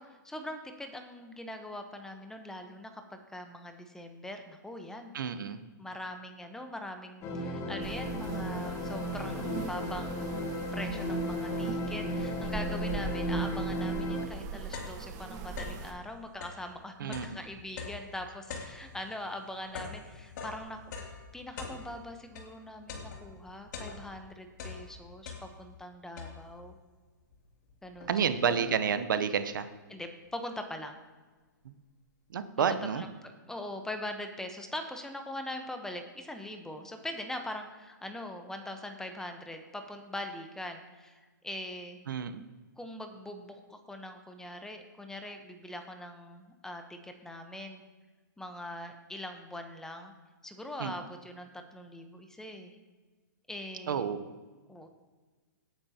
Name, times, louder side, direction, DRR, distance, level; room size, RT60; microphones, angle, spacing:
voice 1, 0.0-5.1 5.8-10.4 10.7-20.9 21.3-26.7 27.8-28.7 29.9-31.0 32.6-42.0 42.8-47.8 48.4-50.1 50.4-52.8 53.5-54.1 54.7-54.9, left 1 dB, 5° left, 6 dB, 1.0 m, -42 dB
voice 2, 5.1-5.6 17.0-17.3 28.1-29.7 31.6-31.7 32.3-33.0 42.1-42.4 50.8-50.9 53.9-54.2, right 7 dB, 75° right, 11 dB, 0.9 m, -30 dB
sound 1, 7.2-14.3, equal, 30° left, 1.3 m, -34 dB
sound 2, 7.8-15.9, right 3 dB, 30° right, 1.3 m, -41 dB
sound 3, 14.7-15.9 16.3-22.6 22.9-24.3 24.5-25.8 26.2-26.7 27.3-27.4 27.7-28.9, left 5 dB, 60° left, 2.8 m, -43 dB
18.0 x 8.9 x 2.9 m, 1.4 s
hypercardioid pair, 130°, 11 cm